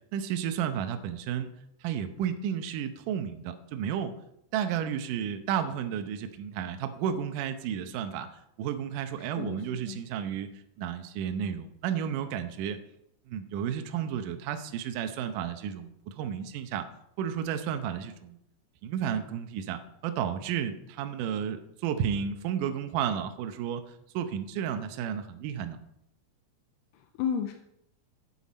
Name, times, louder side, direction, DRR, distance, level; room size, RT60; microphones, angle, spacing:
voice 1, 0.1-1.5 1.8-4.1 4.5-8.3 8.6-10.5 10.8-12.8 13.3-16.8 17.2-18.4 18.8-23.8 24.1-25.8, right 8 dB, 85° right, 7 dB, 1.8 m, -32 dB
voice 2, 9.2-9.6 9.9-10.0 26.9-27.5, left 8 dB, 85° left, 5 dB, 2.7 m, -32 dB
11.0 x 8.8 x 4.2 m, 0.79 s
omnidirectional pair, 4.9 m